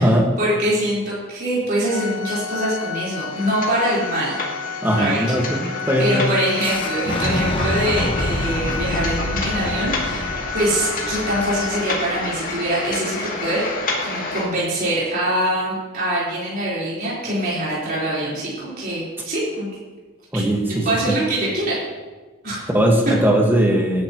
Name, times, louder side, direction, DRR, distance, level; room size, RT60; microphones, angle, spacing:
voice 1, 0.4-4.4 5.0-5.2 6.0-13.7 14.0-19.7 20.3-21.8 22.4-22.7, right 1 dB, 45° right, -8 dB, 4.3 m, -24 dB
Organ, 1.9-12.4, left 6 dB, 80° left, 0.6 m, -32 dB
sound 1, 3.3-14.5, left 3 dB, 40° left, 2.1 m, -30 dB
voice 2, 4.8-5.6 5.9-6.3 20.3-21.2 22.7-24.0, equal, 10° right, 0 dB, 1.7 m, -19 dB
Fire / Explosion, 6.6-12.5, left 1 dB, 25° left, 1.0 m, -27 dB
18.0 x 10.5 x 3.1 m, 1.3 s
head